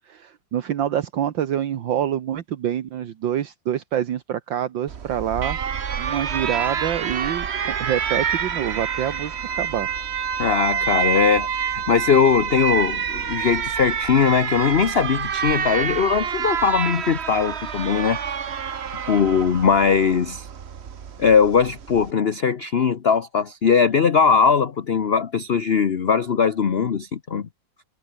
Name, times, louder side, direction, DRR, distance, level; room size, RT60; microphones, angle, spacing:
voice 1, 0.1-5.6 6.0-9.9, right 10 dB, 70° right, 1.9 m, -26 dB
Alarm, 4.9-22.1, right 7 dB, 45° right, 1.0 m, -27 dB
voice 2, 10.4-18.2 19.1-20.5 21.2-27.5, left 6 dB, 45° left, 0.8 m, -20 dB
omnidirectional pair, 2.2 m